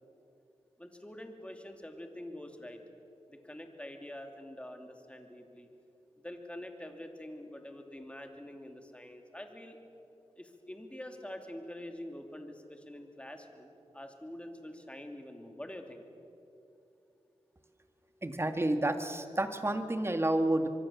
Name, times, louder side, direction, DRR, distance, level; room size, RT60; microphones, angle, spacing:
voice 1, 0.8-2.8 3.3-5.7 6.2-9.8 10.4-16.0, left 1 dB, 10° left, 5 dB, 2.9 m, -46 dB
voice 2, 18.2-20.7, right 1 dB, 25° right, 7 dB, 2.0 m, -30 dB
24.0 x 24.0 x 7.3 m, 2.8 s
cardioid pair, 65°, 11 cm